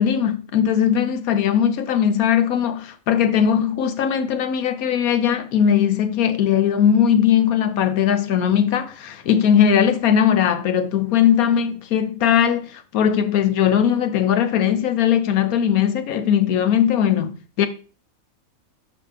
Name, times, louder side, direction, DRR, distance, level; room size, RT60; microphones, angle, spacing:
voice 1, 0.0-17.7, left 9 dB, 85° left, 1.2 m, -19 dB
7.4 x 6.0 x 3.4 m
omnidirectional pair, 1.5 m